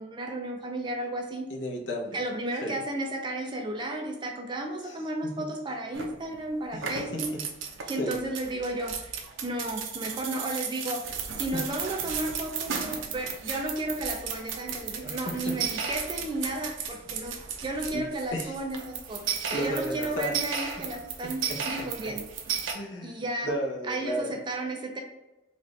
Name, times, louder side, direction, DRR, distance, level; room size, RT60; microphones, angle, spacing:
voice 1, 0.0-1.5 2.1-7.3 7.9-11.0 11.3-17.3 17.6-22.2 23.0-23.5 23.9-25.0, right 1 dB, 25° right, 2 dB, 0.4 m, -33 dB
voice 2, 1.5-2.2 2.6-2.8 4.8-5.0 5.2-5.5 6.7-7.4 7.9-8.1 11.5-11.6 15.0-15.6 17.9-18.1 18.3-18.6 19.5-20.7 21.2-21.3 22.7-24.4, equal, 65° left, -2 dB, 0.8 m, -34 dB
sound 1, 5.9-6.4 6.7-22.7, right 6 dB, 75° right, 0.6 m, -35 dB
4.1 x 2.5 x 3.2 m, 0.97 s
head